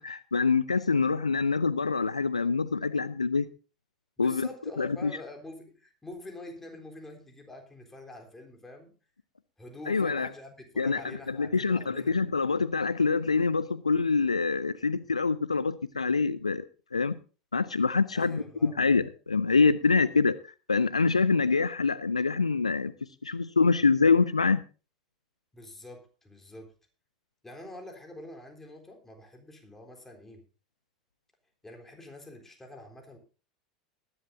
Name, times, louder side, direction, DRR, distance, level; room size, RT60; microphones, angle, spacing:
voice 1, 0.0-3.5 4.2-4.5 4.8-5.1 9.9-10.3 10.8-11.0 11.3-16.6 16.9-17.2 17.5-22.9 23.2-24.6, left 4 dB, 85° left, 18 dB, 0.5 m, -25 dB
voice 2, 4.2-8.9 9.6-12.2 18.1-18.8 25.5-26.7 27.4-30.4 31.6-33.2, left 1 dB, 10° left, 3 dB, 3.8 m, -46 dB
20.0 x 11.0 x 2.7 m, 0.34 s
figure-of-eight pair, 80°, 3 cm